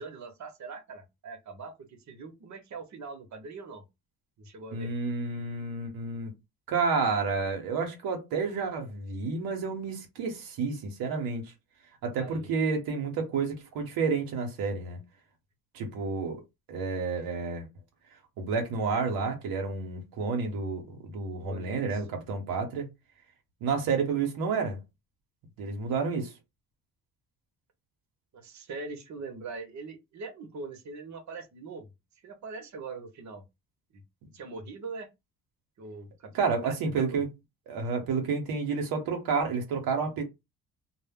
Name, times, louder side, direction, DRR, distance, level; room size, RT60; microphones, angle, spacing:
voice 1, 0.0-3.9 4.4-4.9 12.2-12.5 21.3-22.0 28.3-31.9 32.2-33.4 33.9-34.0 34.3-35.1 35.8-37.2, right 4 dB, 50° right, 0.8 m, -42 dB
voice 2, 4.7-6.3 6.7-11.5 12.0-15.0 15.7-16.4 16.7-17.7 18.4-22.9 23.6-24.8 25.6-26.3 36.3-37.3 37.7-40.2, right 4 dB, 90° right, 0.7 m, -30 dB
2.0 x 2.0 x 3.4 m
cardioid pair, 85°, 35 cm